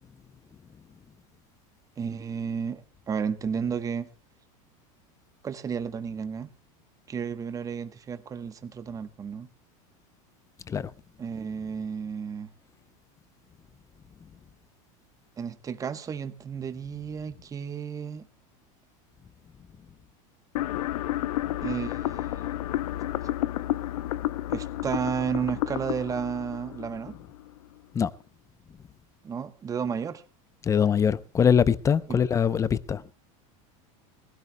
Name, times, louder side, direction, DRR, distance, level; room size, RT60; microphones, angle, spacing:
voice 1, 2.0-4.1 5.4-6.5 7.1-9.5 11.2-12.5 15.4-18.3 21.6-22.5 24.5-27.2 29.2-30.2 32.1-32.2, right 7 dB, 20° right, 1.0 m, -32 dB
sound 1, 20.6-27.6, left 14 dB, 90° left, 0.7 m, -31 dB
voice 2, 30.6-33.0, left 7 dB, 15° left, 0.6 m, -23 dB
22.0 x 16.5 x 2.2 m
supercardioid pair, 145°, 18 cm